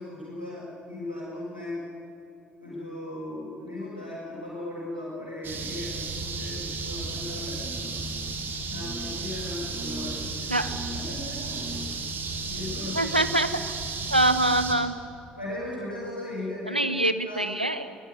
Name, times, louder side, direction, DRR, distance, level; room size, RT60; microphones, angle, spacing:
voice 1, 0.0-1.8 2.6-7.9 8.7-10.5 10.9-11.5 12.4-13.1 15.4-16.8 17.2-17.5, left 1 dB, 90° left, -8 dB, 5.6 m, -37 dB
sound 1, 5.4-14.7, right 3 dB, 45° right, 3.4 m, -33 dB
voice 2, 12.9-13.7 14.1-15.0 16.7-18.0, right 1 dB, 90° right, 11 dB, 0.7 m, -24 dB
21.0 x 17.5 x 9.5 m, 2.7 s
figure-of-eight pair, 50°, 5 cm